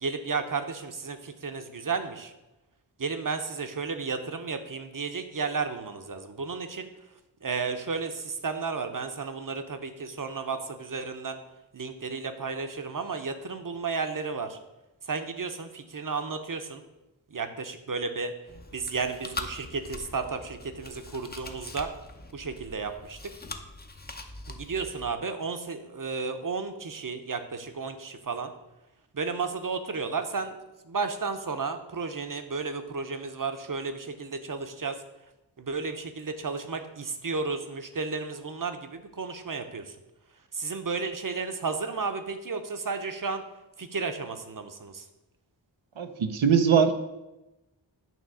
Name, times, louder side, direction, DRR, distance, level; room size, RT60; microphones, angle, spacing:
voice 1, 0.0-2.3 3.0-6.9 7.4-11.4 11.7-14.6 15.0-16.8 17.3-18.3 18.7-21.9 22.3-23.2 24.5-28.5 29.1-30.6 30.8-35.0 35.6-40.0 40.5-43.4 43.8-45.1, right 4 dB, 45° right, 8 dB, 0.8 m, -33 dB
Chewing mastication, 18.5-25.1, left 2 dB, 20° left, 0.7 m, -42 dB
voice 2, 46.0-46.9, right 7 dB, 90° right, 7 dB, 0.7 m, -21 dB
9.1 x 3.1 x 6.2 m, 0.98 s
wide cardioid pair, 45°, 46 cm